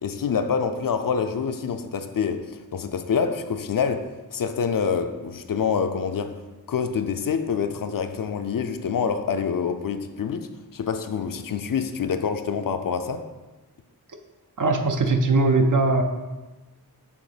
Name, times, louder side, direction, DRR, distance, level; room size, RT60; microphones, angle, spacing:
voice 1, 0.0-6.4 6.7-13.2, left 6 dB, 60° left, 0.5 m, -26 dB
voice 2, 14.6-16.0, right 3 dB, 55° right, 0.6 m, -20 dB
6.3 x 3.0 x 5.0 m
wide cardioid pair, 80°, 38 cm